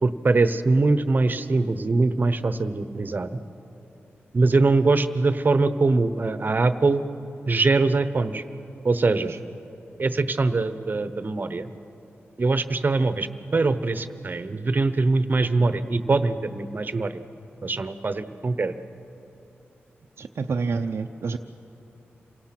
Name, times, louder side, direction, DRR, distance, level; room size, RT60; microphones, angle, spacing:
voice 1, 0.0-3.3 4.3-7.0 7.5-8.4 8.8-9.3 10.0-11.7 12.4-17.1 17.6-18.7, right 3 dB, 45° right, 12 dB, 1.0 m, -22 dB
voice 2, 20.2-21.4, right 4 dB, 65° right, 3 dB, 0.6 m, -28 dB
27.0 x 17.5 x 6.0 m, 2.9 s
cardioid pair, 65°, 4 cm